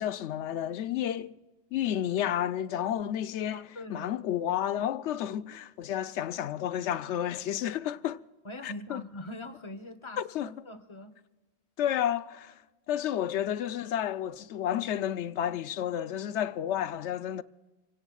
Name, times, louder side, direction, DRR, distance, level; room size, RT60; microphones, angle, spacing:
voice 1, 0.0-1.4 1.7-8.2 8.6-9.0 10.2-10.5 11.8-12.6 12.9-17.4, left 10 dB, 90° left, 0.9 m, -31 dB
voice 2, 3.5-4.1 8.4-11.1, left 1 dB, 25° left, 1.1 m, -42 dB
29.5 x 17.0 x 2.4 m
omnidirectional pair, 1.1 m